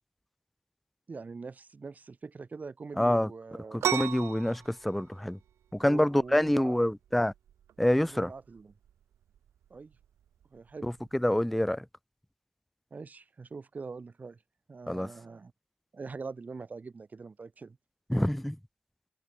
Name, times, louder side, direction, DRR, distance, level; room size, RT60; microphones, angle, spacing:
voice 1, 1.1-3.8 5.8-6.9 8.1-8.7 9.7-9.9 10.5-10.9 12.9-14.4 14.7-15.5 15.9-17.8, right 4 dB, 40° right, 2.3 m, -43 dB
voice 2, 3.0-3.3 3.7-5.4 5.7-7.3 7.8-8.3 10.8-11.9 14.9-15.1 18.1-18.6, left 1 dB, 5° left, 0.3 m, -27 dB
sound 1, 3.8-11.2, right 10 dB, 85° right, 0.4 m, -38 dB
cardioid pair, 90°, 4 cm